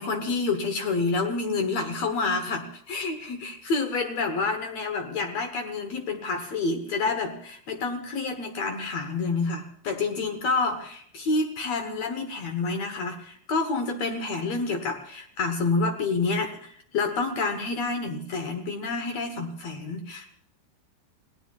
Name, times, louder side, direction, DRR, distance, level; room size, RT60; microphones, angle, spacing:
voice 1, 0.0-20.3, left 3 dB, 65° left, 6 dB, 1.7 m, -28 dB
29.5 x 17.5 x 2.4 m, 0.63 s
omnidirectional pair, 4.7 m